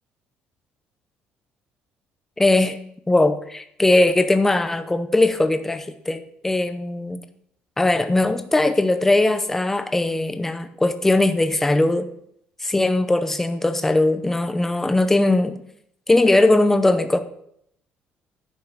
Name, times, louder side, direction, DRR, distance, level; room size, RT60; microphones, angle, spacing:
voice 1, 2.4-2.8 3.1-7.2 7.8-12.1 12.6-15.6 16.1-17.2, left 2 dB, 10° left, 9 dB, 0.7 m, -19 dB
10.5 x 5.5 x 6.5 m, 0.72 s
cardioid pair, 145°, 4 cm